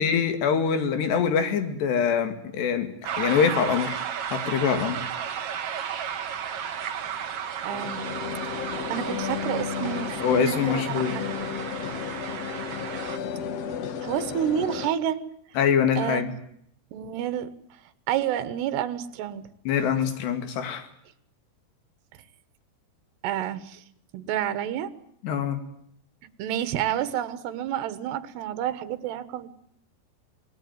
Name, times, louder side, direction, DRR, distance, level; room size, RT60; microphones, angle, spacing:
voice 1, 0.0-4.0 4.3-5.1 10.2-11.1 15.6-16.3 19.7-20.9 25.2-25.6, left 7 dB, 80° left, 9 dB, 4.4 m, -24 dB
sound 1, 3.0-13.2, right 8 dB, 60° right, 1.6 m, -34 dB
voice 2, 7.6-8.0 8.5-11.2 14.0-15.2 16.0-16.3 16.9-17.5 18.1-19.4 23.2-23.8 24.1-24.9 26.4-29.5, right 10 dB, 75° right, 13 dB, 3.4 m, -29 dB
sound 2, 7.7-14.9, left 7 dB, 60° left, 1.8 m, -33 dB
26.0 x 19.5 x 9.5 m, 0.71 s
omnidirectional pair, 4.8 m